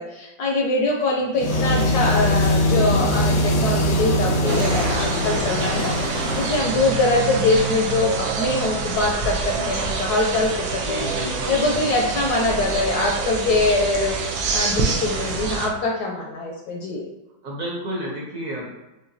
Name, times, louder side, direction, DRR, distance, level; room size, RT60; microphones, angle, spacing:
voice 1, 0.0-11.0 11.5-17.0, left 2 dB, 70° left, -1 dB, 1.0 m, -23 dB
sound 1, 1.4-6.7, left 1 dB, 90° left, 1.6 m, -21 dB
sound 2, 4.5-15.7, right 4 dB, 85° right, 1.4 m, -26 dB
voice 2, 6.1-6.9 9.5-9.9 10.7-12.1 17.4-18.6, equal, 55° right, -3 dB, 1.1 m, -34 dB
5.7 x 2.2 x 2.6 m, 1.0 s
omnidirectional pair, 2.1 m